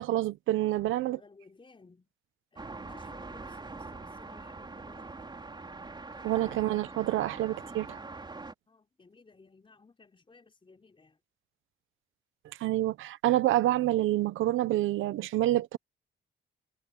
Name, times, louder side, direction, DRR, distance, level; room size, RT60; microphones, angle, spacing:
voice 1, 0.0-1.2 6.2-8.0 12.6-15.8, right 15 dB, 85° right, 1.1 m, -27 dB
voice 2, 0.6-2.1 2.5-5.4 8.7-11.2, left 3 dB, 25° left, 5.0 m, -57 dB
sound 1, 2.6-8.5, right 3 dB, 20° right, 4.1 m, -43 dB
cardioid pair, 90°, 20 cm